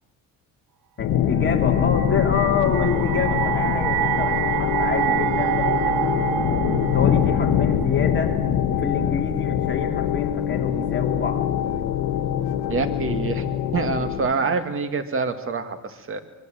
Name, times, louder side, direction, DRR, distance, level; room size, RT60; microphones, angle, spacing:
sound 1, 1.0-14.3, left 9 dB, 85° left, 1.6 m, -23 dB
voice 1, 1.0-8.4 8.7-11.5, left 5 dB, 30° left, 2 dB, 2.9 m, -28 dB
sound 2, 1.7-8.9, right 12 dB, 65° right, 0.9 m, -27 dB
voice 2, 12.7-13.5 13.7-16.2, right 4 dB, 35° right, 9 dB, 1.9 m, -26 dB
25.0 x 21.5 x 7.7 m, 1.1 s
cardioid pair, 140°, 36 cm